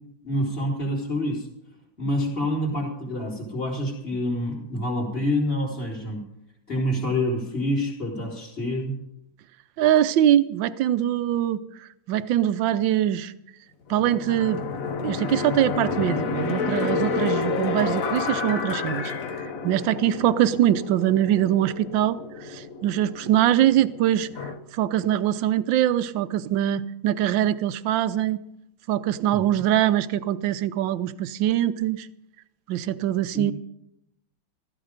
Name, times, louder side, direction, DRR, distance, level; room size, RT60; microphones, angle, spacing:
voice 1, 0.2-1.5 2.0-6.2 6.7-8.9 29.3-29.4 33.3-33.5, left 1 dB, 30° left, -4 dB, 3.7 m, -27 dB
voice 2, 9.8-11.6 12.1-13.3 13.9-14.6 15.0-19.1 19.6-24.3 24.7-28.4 28.9-32.1 32.7-33.5, right 12 dB, 75° right, 14 dB, 1.4 m, -23 dB
sound 1, 13.9-24.6, left 5 dB, 50° left, 1.3 m, -30 dB
15.0 x 14.5 x 5.1 m, 0.80 s
omnidirectional pair, 2.1 m